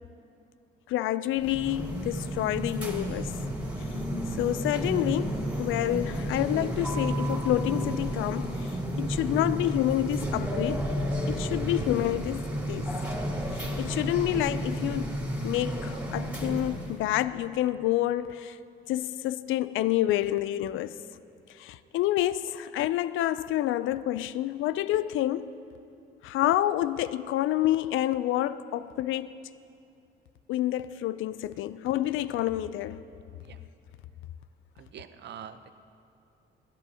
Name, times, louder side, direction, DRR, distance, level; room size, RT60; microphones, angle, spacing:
voice 1, 0.9-3.4 3.8-3.9 4.4-10.9 11.3-12.9 13.5-15.2 15.4-18.6 18.9-21.0 21.5-25.6 26.2-29.5 30.5-33.0, left 13 dB, 80° left, 0.4 m, -28 dB
sound 1, 1.4-17.0, equal, 5° right, 3.0 m, -32 dB
voice 2, 34.8-35.7, right 8 dB, 60° right, 0.7 m, -44 dB
21.5 x 13.0 x 2.8 m
cardioid pair, 90°, 20 cm